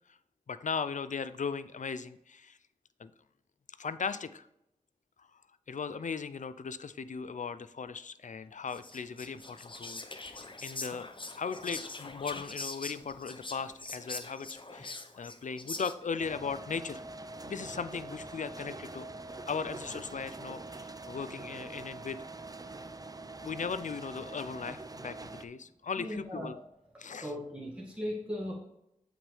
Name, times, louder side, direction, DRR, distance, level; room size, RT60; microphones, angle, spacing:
voice 1, 0.5-2.6 3.0-3.1 3.8-4.5 5.2-5.3 5.7-11.1 11.4-17.0 17.5-19.1 19.5-22.2 23.4-26.6 27.0-27.3, left 5 dB, 65° left, 14 dB, 0.5 m, -38 dB
Whispering, 8.7-16.2, left 3 dB, 35° left, 0.8 m, -43 dB
sound 1, 16.2-25.4, right 2 dB, 25° right, 0.5 m, -44 dB
voice 2, 26.0-26.6 27.1-28.5, equal, 10° right, -4 dB, 1.7 m, -38 dB
7.3 x 6.0 x 3.2 m, 0.82 s
cardioid pair, 40°, 14 cm